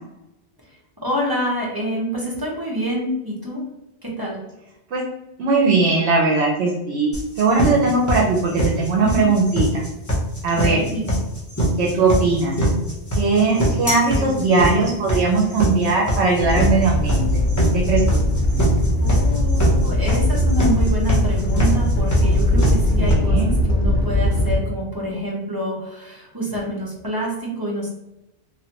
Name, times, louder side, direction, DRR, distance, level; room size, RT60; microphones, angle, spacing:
voice 1, 0.6-3.6 4.0-4.4 9.0-9.3 10.5-11.2 14.1-14.3 19.0-27.9, equal, 25° right, -4 dB, 0.7 m, -27 dB
voice 2, 5.4-9.8 10.4-10.8 11.8-12.5 13.1-17.4 17.7-18.2 23.0-23.5, right 3 dB, 70° right, -1 dB, 0.9 m, -19 dB
sound 1, 7.1-23.1, right 1 dB, 20° left, 0.7 m, -22 dB
Animal, 16.4-24.5, left 1 dB, 50° left, 0.8 m, -20 dB
3.1 x 2.4 x 2.9 m, 0.93 s
omnidirectional pair, 1.2 m